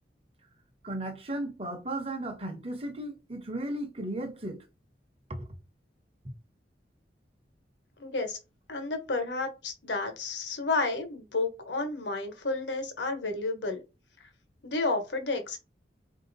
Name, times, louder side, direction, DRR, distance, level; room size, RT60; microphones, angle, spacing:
voice 1, 0.8-4.6 5.3-5.5, right 1 dB, 30° right, 0.8 m, -35 dB
voice 2, 8.0-8.4 8.7-13.8 14.2-14.3 14.6-15.6, left 3 dB, 75° left, 1.2 m, -31 dB
4.3 x 2.8 x 4.0 m
head